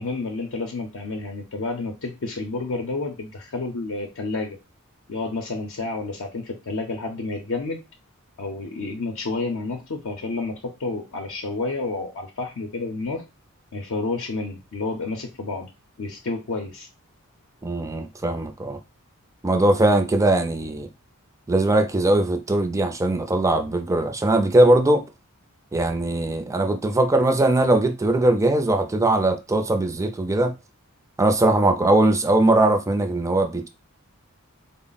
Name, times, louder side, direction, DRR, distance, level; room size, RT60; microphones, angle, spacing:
voice 1, 0.0-4.6 5.1-7.8 8.4-13.2 13.7-15.7 16.0-16.9, left 3 dB, 60° left, 0.6 m, -30 dB
voice 2, 17.6-18.8 19.4-20.9 21.5-25.0 25.7-30.5 31.2-33.7, right 2 dB, 15° right, 0.4 m, -20 dB
3.8 x 2.0 x 3.9 m
head